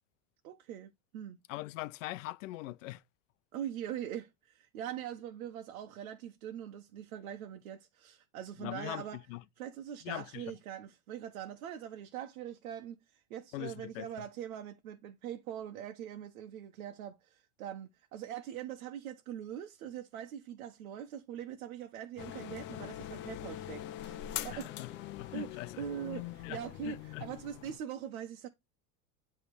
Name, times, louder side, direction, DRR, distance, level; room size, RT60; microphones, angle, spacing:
voice 1, 0.4-1.4 3.5-9.2 9.6-24.9 25.3-28.5, right 10 dB, 85° right, 1.2 m, -42 dB
voice 2, 1.5-3.0 8.6-9.4 10.0-10.6 13.5-14.1 24.5-24.9 25.2-25.9 26.4-27.3, left 18 dB, 65° left, 0.7 m, -42 dB
sound 1, 22.2-27.8, left 12 dB, 30° left, 0.6 m, -43 dB
10.5 x 3.4 x 4.8 m
supercardioid pair, 170°, 41 cm